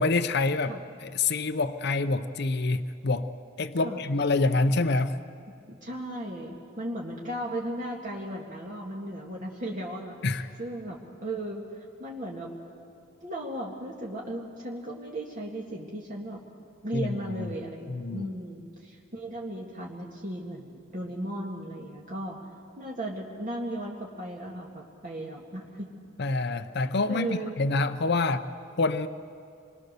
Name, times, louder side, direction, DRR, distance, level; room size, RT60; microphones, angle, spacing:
voice 1, 0.0-3.3 3.6-5.2 10.2-10.5 16.9-17.5 17.9-18.3 26.2-28.4 28.8-29.1, left 3 dB, 55° left, 9 dB, 0.7 m, -27 dB
voice 2, 5.7-12.5 13.2-16.4 16.8-22.4 22.8-25.9 27.1-27.6 28.1-28.3, right 1 dB, 45° right, -3 dB, 2.0 m, -36 dB
26.5 x 22.0 x 6.8 m, 2.4 s
head